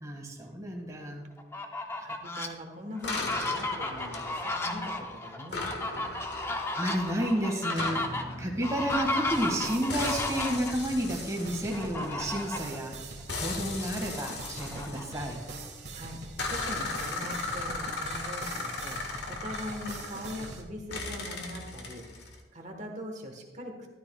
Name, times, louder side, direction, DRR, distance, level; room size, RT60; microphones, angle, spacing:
voice 1, 0.0-1.3 6.3-12.9 13.3-15.4, equal, 15° right, 1 dB, 1.8 m, -31 dB
Fowl, 1.4-2.5 3.0-10.7 11.7-12.8 13.2-13.3 13.7-15.4, left 2 dB, 15° left, 0.7 m, -34 dB
voice 2, 2.0-6.1 15.9-23.8, equal, 40° right, 3 dB, 1.3 m, -41 dB
sound 1, 3.0-5.1 5.5-9.5 9.9-12.7 13.3-15.7 16.4-20.6 20.9-22.4, left 3 dB, 60° left, 1.5 m, -38 dB
sound 2, 8.9-20.6, right 2 dB, 60° right, 1.8 m, -43 dB
13.5 x 12.5 x 2.3 m, 1.2 s
head